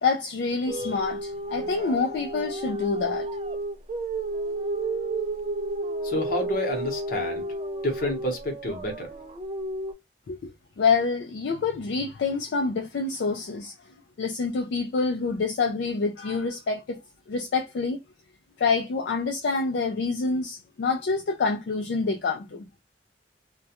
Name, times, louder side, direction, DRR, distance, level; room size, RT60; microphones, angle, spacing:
voice 1, 0.0-3.3 10.3-10.5 10.8-13.7 14.2-17.0 17.3-18.0 18.6-22.6, left 4 dB, 70° left, 0.4 m, -27 dB
sound 1, 0.7-9.9, right 2 dB, 35° right, 0.4 m, -32 dB
voice 2, 6.0-7.5 7.8-9.1, left 1 dB, 50° left, 0.9 m, -29 dB
2.3 x 2.1 x 2.8 m
head